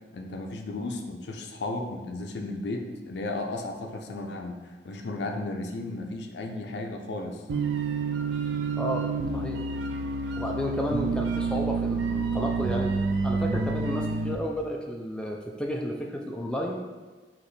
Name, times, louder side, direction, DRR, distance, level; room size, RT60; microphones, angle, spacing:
voice 1, 0.1-7.4, left 2 dB, 75° left, 3 dB, 0.5 m, -34 dB
sound 1, 7.5-14.4, right 4 dB, 90° right, 0.4 m, -28 dB
voice 2, 8.8-9.6 10.4-12.9 13.2-16.8, equal, 5° left, 0 dB, 0.3 m, -32 dB
5.0 x 2.9 x 3.1 m, 1.3 s
head